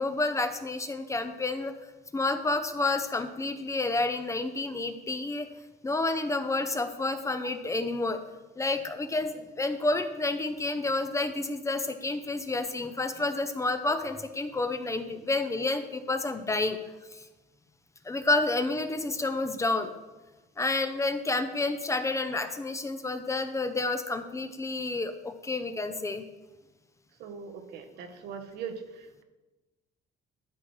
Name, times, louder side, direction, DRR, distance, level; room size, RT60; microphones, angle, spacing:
voice 1, 0.0-1.7 2.1-5.5 5.8-8.2 8.6-16.8 17.1-17.3 18.0-19.9 20.6-26.2, left 2 dB, 15° left, 8 dB, 0.6 m, -29 dB
voice 2, 27.2-29.2, right 6 dB, 75° right, 6 dB, 0.9 m, -41 dB
12.5 x 4.4 x 3.1 m, 1.1 s
cardioid pair, 110°, 17 cm